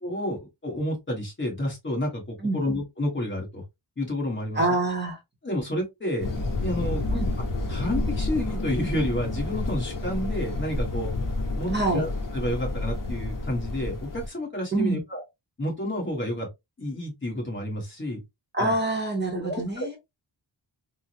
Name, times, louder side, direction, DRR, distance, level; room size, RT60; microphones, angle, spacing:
voice 1, 0.0-3.6 4.0-4.6 5.4-6.3 6.6-7.0 7.7-11.1 11.5-15.2 15.6-16.5 16.8-18.2 18.6-18.7 19.3-20.0, left 1 dB, 25° left, 1.3 m, -30 dB
voice 2, 4.5-5.2 7.1-7.3 11.7-12.0 14.7-15.0 18.5-20.0, right 2 dB, 25° right, 0.8 m, -25 dB
sound 1, 6.2-14.3, left 2 dB, 45° left, 0.8 m, -29 dB
3.5 x 2.1 x 2.8 m
wide cardioid pair, 175°, 44 cm